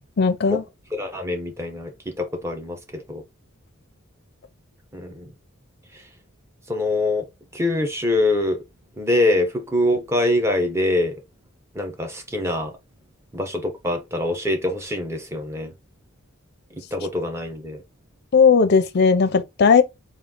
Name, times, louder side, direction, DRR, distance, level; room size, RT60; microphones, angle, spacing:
voice 1, 0.2-0.6 18.3-19.8, left 5 dB, 50° left, 0.4 m, -16 dB
voice 2, 0.9-3.2 4.9-5.3 6.7-7.2 7.5-8.6 9.0-11.2 11.7-12.7 13.3-15.7 16.9-17.8, left 1 dB, 10° right, 0.6 m, -24 dB
3.6 x 2.4 x 3.6 m
head